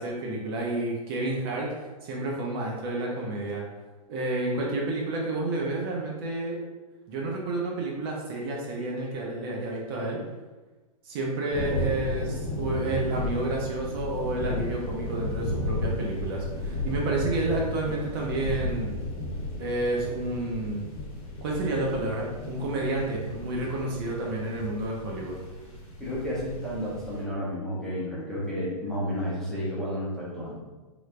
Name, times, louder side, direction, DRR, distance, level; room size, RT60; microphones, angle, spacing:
voice 1, 0.0-3.6 4.1-6.6 7.1-10.2 11.0-18.9 19.6-20.8 21.4-25.4, right 2 dB, 40° right, -2 dB, 0.6 m, -30 dB
sound 1, 11.5-27.2, left 1 dB, 45° left, 1.0 m, -34 dB
voice 2, 26.0-30.6, equal, ahead, -8 dB, 0.7 m, -31 dB
3.2 x 3.0 x 2.4 m, 1.2 s
hypercardioid pair, 145°, 20 cm